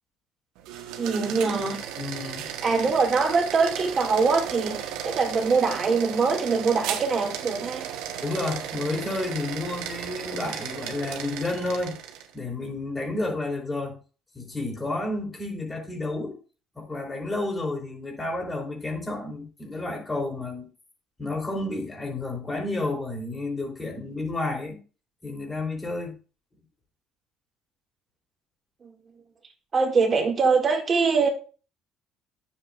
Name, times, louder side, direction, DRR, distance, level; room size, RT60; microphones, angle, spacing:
sound 1, 0.6-12.3, right 9 dB, 80° right, 1.1 m, -35 dB
voice 1, 1.0-1.8 2.6-7.9 28.8-28.9 29.7-31.3, right 4 dB, 40° right, 2.0 m, -23 dB
voice 2, 2.0-2.4 8.2-12.0 12.3-14.0 14.3-16.4 16.7-20.7 21.2-24.8 25.2-26.2, left 2 dB, 20° left, 3.2 m, -31 dB
9.8 x 7.4 x 2.4 m
supercardioid pair, 90°, 0 cm